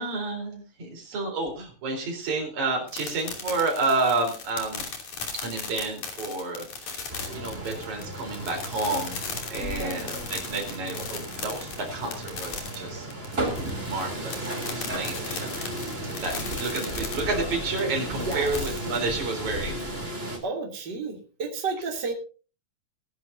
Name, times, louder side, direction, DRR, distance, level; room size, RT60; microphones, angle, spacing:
voice 1, 0.0-4.8 5.4-9.2 9.5-10.0 10.3-13.1 13.5-15.5 16.2-19.8, right 3 dB, 75° right, 1 dB, 5.4 m, -30 dB
sound 1, 2.9-19.0, left 5 dB, 75° left, 4.3 m, -37 dB
sound 2, 7.1-20.4, right 1 dB, 20° right, 3.5 m, -34 dB
sound 3, 9.6-13.0, right 1 dB, 55° left, 9.0 m, -49 dB
voice 2, 16.3-16.9 18.1-18.8 20.4-22.1, right 4 dB, 35° right, 0 dB, 3.5 m, -33 dB
21.0 x 11.0 x 2.7 m, 0.36 s
omnidirectional pair, 3.4 m